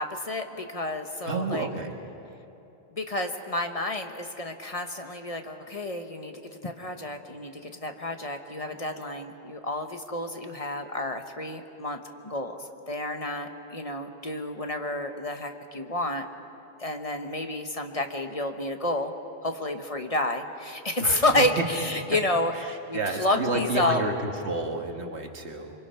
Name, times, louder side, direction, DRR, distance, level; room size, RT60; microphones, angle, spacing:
voice 1, 0.0-1.7 2.9-12.6 12.9-16.3 16.8-19.1 19.4-24.0, left 1 dB, 35° left, 5 dB, 1.1 m, -30 dB
voice 2, 1.3-1.9 21.0-21.4 22.9-25.7, right 2 dB, 85° right, 3 dB, 2.0 m, -30 dB
26.0 x 24.0 x 5.7 m, 2.9 s
omnidirectional pair, 1.1 m